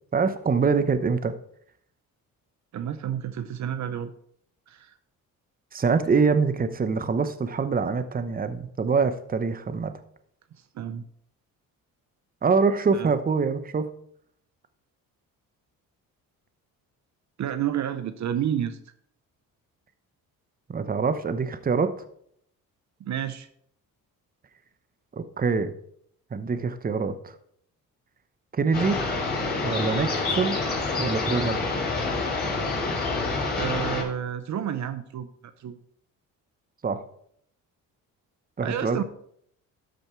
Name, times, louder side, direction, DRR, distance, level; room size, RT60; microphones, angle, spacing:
voice 1, 0.1-1.3 5.7-9.9 12.4-13.9 20.7-21.9 25.1-25.7 26.3-27.3 28.5-29.0 29.6-30.6 31.0-31.7 36.8-37.0 38.6-39.0, right 5 dB, 25° right, 11 dB, 0.9 m, -24 dB
voice 2, 2.7-4.1 4.7-5.0 10.7-11.0 12.9-13.1 17.4-18.8 23.0-23.5 33.6-35.3 35.6-35.8 38.6-39.0, right 9 dB, 55° right, 11 dB, 0.8 m, -30 dB
sound 1, 28.7-34.0, left 3 dB, 25° left, 3.6 m, -27 dB
13.0 x 5.2 x 4.6 m, 0.67 s
cardioid pair, 85°, 35 cm